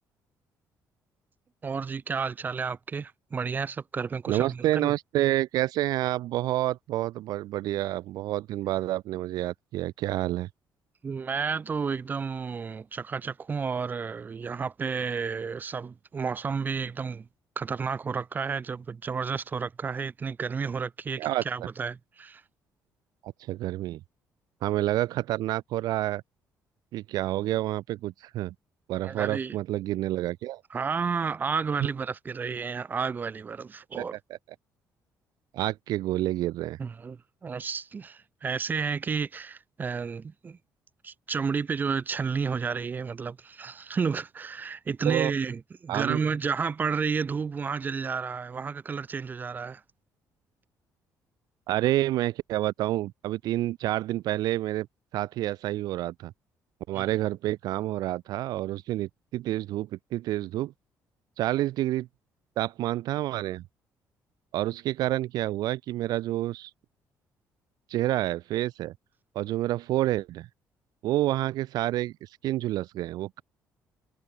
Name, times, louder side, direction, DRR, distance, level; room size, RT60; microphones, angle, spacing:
voice 1, 1.6-4.9 11.0-17.2 17.6-22.4 29.0-29.5 30.7-34.1 36.8-40.6 41.0-49.8 56.9-57.1, right 5 dB, 25° right, 1.0 m, -31 dB
voice 2, 4.3-10.5 21.2-21.4 23.2-24.0 24.6-26.2 26.9-28.5 28.9-30.6 34.0-34.1 34.3-34.4 35.5-36.8 45.0-45.3 45.9-46.2 51.7-54.9 55.1-56.3 56.9-60.7 61.4-62.1 62.6-63.6 64.5-66.7 67.9-68.9 69.4-70.5 71.0-73.4, right 15 dB, 75° right, 0.4 m, -28 dB
cardioid pair, 145°, 7 cm